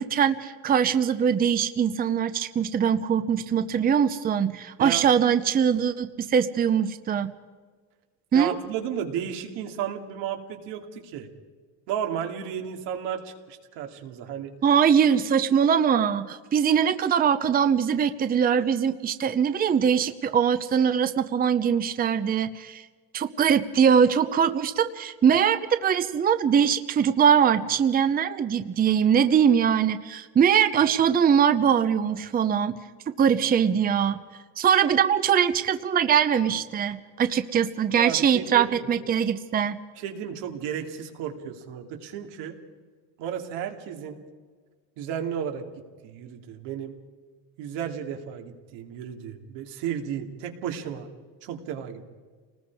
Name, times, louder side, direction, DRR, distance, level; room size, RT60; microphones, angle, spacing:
voice 1, 0.0-7.3 8.3-8.5 14.6-22.8 23.1-32.7 33.2-34.2 34.6-39.8, right 8 dB, 20° right, 10 dB, 0.7 m, -22 dB
voice 2, 8.3-11.3 11.9-14.5 38.0-38.9 40.0-42.6 43.2-44.2 45.0-45.6 46.0-47.0 47.6-51.1 51.4-52.0, right 9 dB, 85° right, 4 dB, 2.8 m, -33 dB
29.5 x 20.0 x 4.8 m, 1.5 s
cardioid pair, 155°, 41 cm